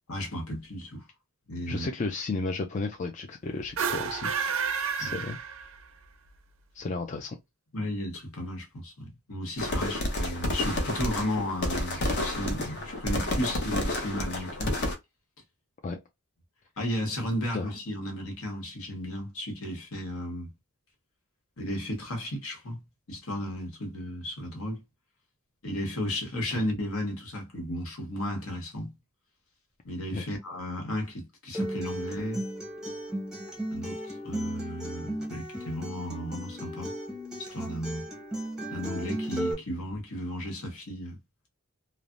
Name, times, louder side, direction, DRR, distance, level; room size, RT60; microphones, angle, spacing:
voice 1, 0.1-1.0 1.5-1.9 5.0-5.2 7.7-14.8 16.8-20.5 21.6-22.8 23.1-24.8 25.6-28.9 29.8-32.4 33.7-36.9 37.4-38.1 38.7-41.2, left 1 dB, 70° left, 1.1 m, -34 dB
voice 2, 1.7-4.3 5.0-5.4 6.7-7.4 15.8-16.0 17.5-17.7 26.5-26.6 30.1-30.2, left 3 dB, 35° left, 0.3 m, -33 dB
sound 1, 3.7-6.0, right 6 dB, 60° right, 0.4 m, -30 dB
sound 2, 9.6-14.9, left 1 dB, 50° left, 0.8 m, -30 dB
Acoustic guitar, 31.5-39.5, right 1 dB, 5° right, 0.7 m, -35 dB
3.2 x 2.0 x 2.5 m
head